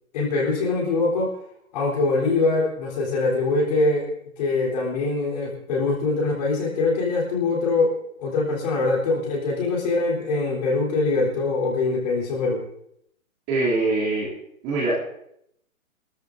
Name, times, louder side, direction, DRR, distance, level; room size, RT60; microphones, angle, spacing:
voice 1, 0.1-1.3 1.7-4.1 4.4-12.6, left 3 dB, 30° left, -3 dB, 3.8 m, -23 dB
voice 2, 13.5-14.3 14.6-14.9, right 2 dB, 20° right, -6 dB, 2.9 m, -23 dB
25.5 x 13.5 x 2.7 m, 0.73 s
hypercardioid pair, 165°, 41 cm